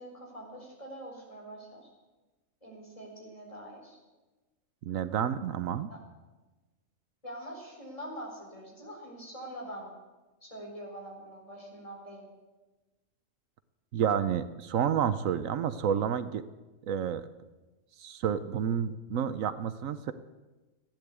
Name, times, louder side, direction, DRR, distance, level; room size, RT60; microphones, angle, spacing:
voice 1, 0.0-1.9 2.6-4.0 5.9-6.0 7.2-9.9 10.4-12.3, right 1 dB, 25° left, -1 dB, 4.4 m, -44 dB
voice 2, 4.8-5.9 13.9-16.4 16.8-17.3 18.0-20.1, right 8 dB, 80° right, 13 dB, 1.1 m, -30 dB
16.0 x 10.5 x 8.2 m, 1.2 s
omnidirectional pair, 1.4 m